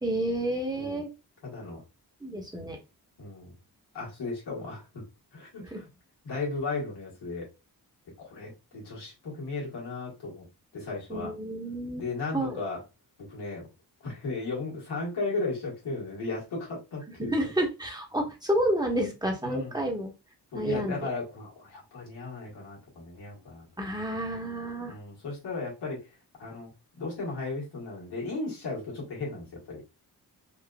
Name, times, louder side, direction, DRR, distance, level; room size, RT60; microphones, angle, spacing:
voice 1, 0.0-1.1 2.2-2.8 5.6-5.8 11.1-12.1 12.3-12.6 17.2-20.1 20.5-21.0 23.8-24.9, right 1 dB, 10° right, 1 dB, 1.2 m, -30 dB
voice 2, 1.4-1.8 3.2-3.5 3.9-5.0 5.3-5.9 6.2-7.5 8.2-10.4 10.7-11.3 12.0-12.8 13.2-13.7 14.0-17.3 19.4-19.8 20.5-23.7 24.9-26.1 26.4-26.7 27.0-29.8, left 3 dB, 85° left, -4 dB, 1.7 m, -35 dB
4.1 x 2.4 x 2.3 m, 0.25 s
cardioid pair, 55°, 39 cm